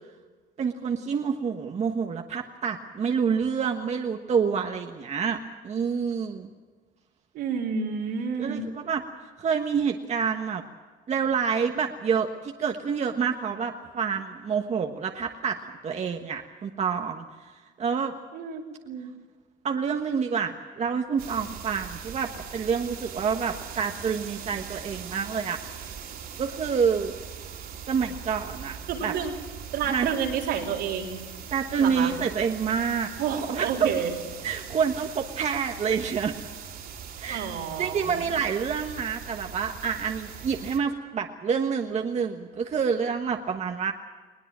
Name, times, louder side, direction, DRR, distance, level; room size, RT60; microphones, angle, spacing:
voice 1, 0.6-6.5 8.4-9.0 9.4-10.6 11.1-15.6 15.8-17.2 17.8-18.1 19.6-25.6 26.4-27.1 27.9-28.8 29.0-29.1 29.9-30.1 31.5-33.1 33.5-33.9 34.4-36.4 37.2-43.9, right 6 dB, 40° right, 4 dB, 1.3 m, -27 dB
voice 2, 7.3-8.7 18.3-19.1 28.9-29.3 29.7-31.2 31.8-32.1 33.2-34.1 37.3-38.3, right 7 dB, 80° right, -1 dB, 3.9 m, -30 dB
sound 1, 21.2-40.8, right 7 dB, 65° right, 3.5 m, -41 dB
21.0 x 19.5 x 7.5 m, 1.4 s
cardioid pair, 110°, 17 cm